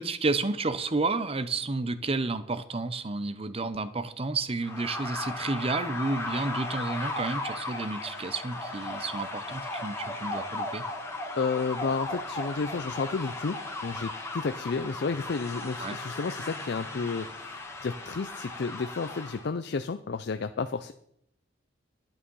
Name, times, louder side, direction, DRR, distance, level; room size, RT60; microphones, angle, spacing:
voice 1, 0.0-10.8 15.8-16.0, right 3 dB, 30° right, 13 dB, 0.7 m, -31 dB
sound 1, 4.6-19.5, left 2 dB, 15° left, 1.8 m, -36 dB
voice 2, 11.4-20.9, left 4 dB, 55° left, 9 dB, 0.5 m, -32 dB
11.5 x 8.9 x 5.5 m, 0.76 s
head